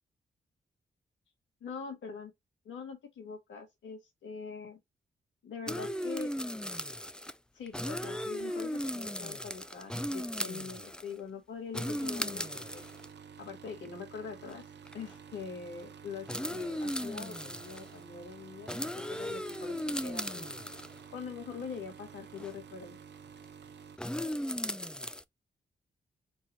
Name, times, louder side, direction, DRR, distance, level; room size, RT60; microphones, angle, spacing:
voice 1, 1.6-2.3 2.7-4.8 5.4-6.3 7.5-12.8 13.4-14.6 14.9-20.5 21.1-23.0, left 5 dB, 90° left, 2.1 m, -43 dB
sound 1, 5.7-7.3 7.7-11.1 11.7-13.1 13.9-14.0 14.5-14.6 14.9-15.1 16.3-17.9 18.7-21.0 22.4-22.5 24.0-25.2, left 1 dB, 5° left, 0.6 m, -36 dB
sound 2, 11.8-24.0, right 7 dB, 65° right, 0.8 m, -51 dB
4.6 x 2.7 x 4.3 m
supercardioid pair, 45°, 19 cm